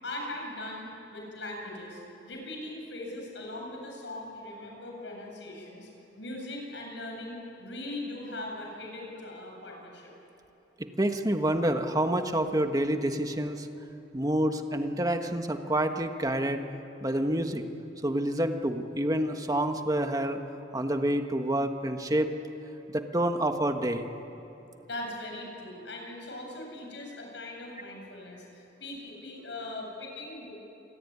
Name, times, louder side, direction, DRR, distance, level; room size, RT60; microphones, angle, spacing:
voice 1, 0.0-5.9 6.2-10.1 24.9-30.5, left 1 dB, 75° left, 0 dB, 7.5 m, -40 dB
voice 2, 10.8-13.7 14.1-16.6 17.0-17.6 18.0-20.4 20.7-22.3 22.9-24.1, right 1 dB, 20° right, 6 dB, 1.5 m, -28 dB
27.5 x 21.0 x 9.6 m, 3.0 s
head